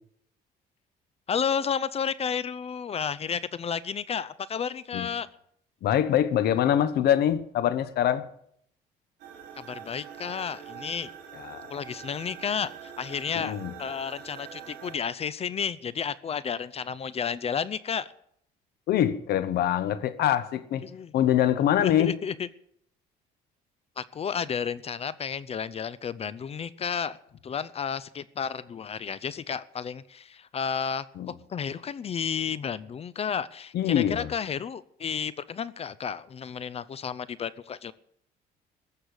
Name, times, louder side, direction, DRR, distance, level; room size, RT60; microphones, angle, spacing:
voice 1, 1.3-5.3 9.6-11.1 11.7-18.1 20.8-21.1 21.8-22.5 24.0-27.2 27.4-31.1 31.5-37.9, left 7 dB, 35° left, 0.6 m, -32 dB
voice 2, 5.8-8.3 11.3-11.7 13.3-13.7 18.9-20.9 21.1-22.2 31.2-31.3 33.7-34.3, left 10 dB, 70° left, 1.2 m, -24 dB
sound 1, 9.2-14.9, right 8 dB, 75° right, 3.8 m, -44 dB
15.5 x 6.7 x 9.7 m
cardioid pair, 110°, 17 cm